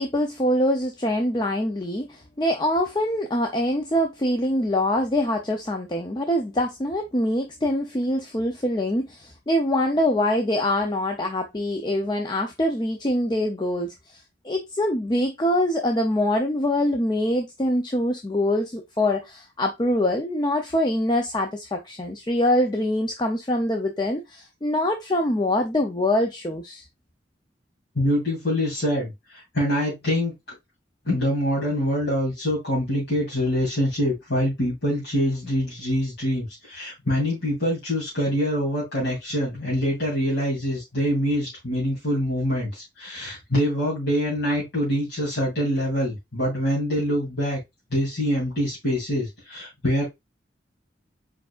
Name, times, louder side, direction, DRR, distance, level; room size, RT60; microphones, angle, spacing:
voice 1, 0.0-26.8, left 1 dB, 25° left, 0.5 m, -24 dB
voice 2, 27.9-30.5 31.0-47.6 47.9-50.1, equal, 65° left, 2.8 m, -25 dB
4.7 x 4.6 x 2.4 m
head